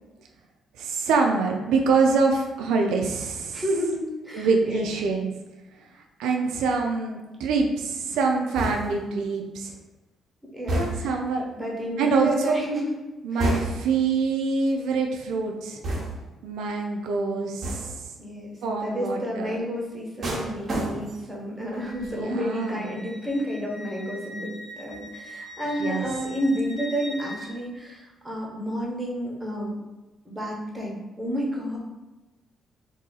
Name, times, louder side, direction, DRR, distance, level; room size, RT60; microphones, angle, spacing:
voice 1, 0.8-3.6 4.3-5.3 6.2-9.7 10.7-11.4 12.0-12.6 13.2-15.8 16.4-18.0 18.6-19.6 22.1-22.9 25.8-26.1, right 4 dB, 90° right, 2 dB, 0.4 m, -25 dB
voice 2, 3.5-4.9 10.5-11.2 11.5-12.9 13.3-13.6 18.2-29.8 30.2-31.8, equal, 15° right, -3 dB, 1.1 m, -30 dB
sound 1, 8.5-9.1 10.7-11.3 13.4-14.0 15.8-16.4 17.6-18.1 20.2-21.3 21.7-22.1, right 1 dB, 50° right, 0.8 m, -30 dB
Wind instrument woodwind instrument, 21.8-27.5, left 1 dB, 25° left, 0.9 m, -42 dB
2.7 x 2.7 x 3.9 m, 1.1 s
cardioid pair, 90°, 0 cm